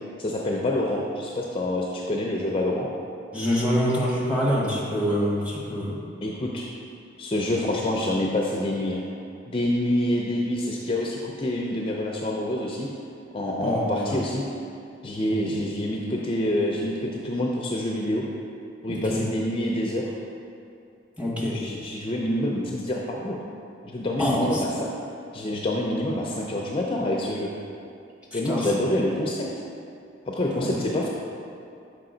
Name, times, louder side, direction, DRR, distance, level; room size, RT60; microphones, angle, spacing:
voice 1, 0.2-2.9 6.2-6.7 7.2-9.0 9.5-12.9 13.3-14.4 15.0-18.2 18.8-20.0 21.5-23.4 23.8-24.7 25.3-27.5 28.3-29.4 30.3-31.1, left 1 dB, 30° left, -2 dB, 0.4 m, -27 dB
voice 2, 3.3-6.0 13.6-14.1 15.5-15.6 18.9-19.2 21.2-21.6 24.2-24.8 28.3-28.7 30.5-31.1, equal, 10° right, -7 dB, 1.2 m, -26 dB
5.8 x 4.7 x 3.8 m, 2.5 s
head